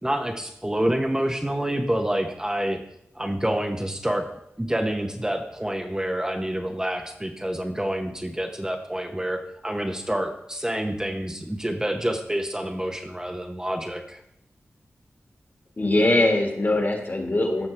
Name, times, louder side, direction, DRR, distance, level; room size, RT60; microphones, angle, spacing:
voice 1, 0.0-2.8 3.1-4.3 4.6-14.2, right 1 dB, 15° right, 4 dB, 0.8 m, -27 dB
voice 2, 15.8-17.7, left 2 dB, 45° left, 2 dB, 1.9 m, -22 dB
14.5 x 6.1 x 3.3 m, 0.78 s
wide cardioid pair, 60°, 5 cm